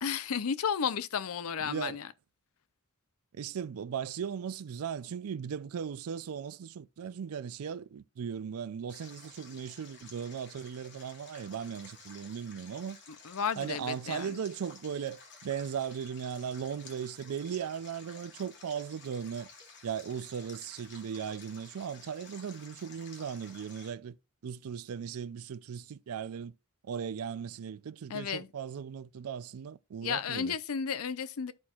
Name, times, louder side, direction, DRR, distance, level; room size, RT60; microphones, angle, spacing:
voice 1, 0.0-2.1 13.2-14.4 28.1-28.5 30.0-31.5, left 7 dB, 70° left, 0.5 m, -33 dB
voice 2, 1.6-2.0 3.3-13.0 13.6-19.5 19.8-24.2 24.4-26.5 26.8-30.6, right 7 dB, 70° right, 0.4 m, -37 dB
Stream, 8.9-23.9, left 4 dB, 55° left, 2.2 m, -53 dB
13.0 x 4.4 x 2.4 m
head